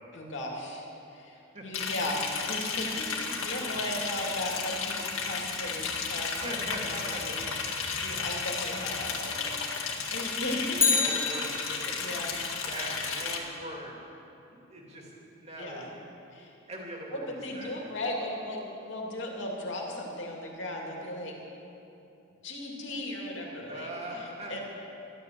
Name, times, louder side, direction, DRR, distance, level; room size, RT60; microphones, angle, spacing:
voice 1, 0.1-7.4 8.0-11.0 12.0-12.6 15.6-15.8 16.3-16.5 17.1-18.6 18.9-21.3 22.4-24.6, left 1 dB, 60° left, -1 dB, 2.6 m, -37 dB
voice 2, 1.3-1.6 3.2-3.8 6.4-7.7 10.1-10.2 10.9-12.3 12.6-14.0 14.5-15.9 16.7-17.8 23.6-24.6, right 1 dB, 30° right, -1 dB, 2.5 m, -41 dB
Liquid, 1.7-13.4, left 5 dB, 80° left, 2.0 m, -33 dB
Bicycle, 10.7-12.1 20.4-20.5, left 4 dB, 10° left, 0.8 m, -28 dB
13.0 x 12.5 x 7.6 m, 2.9 s
head